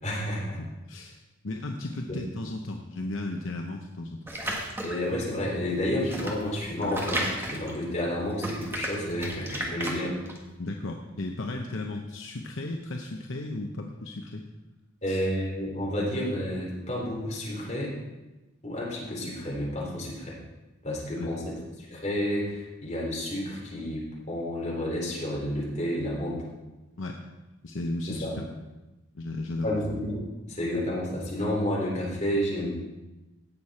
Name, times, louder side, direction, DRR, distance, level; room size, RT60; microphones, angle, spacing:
voice 1, 0.0-0.6 4.8-10.2 15.0-17.9 18.6-20.4 20.8-24.0 24.3-26.4 28.1-28.3 29.6-32.7, left 1 dB, 35° left, -4 dB, 3.6 m, -30 dB
voice 2, 0.6-1.2 1.4-4.2 10.6-14.4 15.1-15.2 21.2-21.3 27.0-27.2 27.6-28.3 29.1-29.7, left 2 dB, 65° left, 2 dB, 0.8 m, -35 dB
sound 1, 4.3-5.1 5.7-8.1 8.4-10.4, right 1 dB, 10° right, 1.4 m, -33 dB
17.0 x 6.6 x 4.3 m, 1.1 s
head